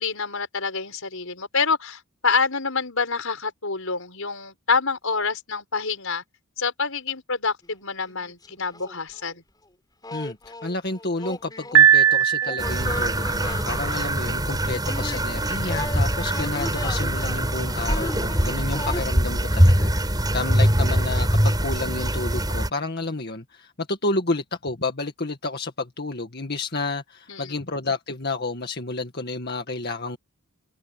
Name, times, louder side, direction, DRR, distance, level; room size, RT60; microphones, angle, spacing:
voice 1, 0.0-6.2 6.6-9.4 27.3-27.6, left 4 dB, 70° left, 5.5 m, -27 dB
sound 1, 7.6-7.7 8.0-9.3 10.0-19.1, left 2 dB, 20° left, 4.1 m, -36 dB
voice 2, 10.1-30.2, left 2 dB, 50° left, 2.0 m, -30 dB
Piano, 11.7-13.0, right 8 dB, 75° right, 1.1 m, -17 dB
sound 2, 12.6-22.7, right 1 dB, 20° right, 6.3 m, -23 dB
head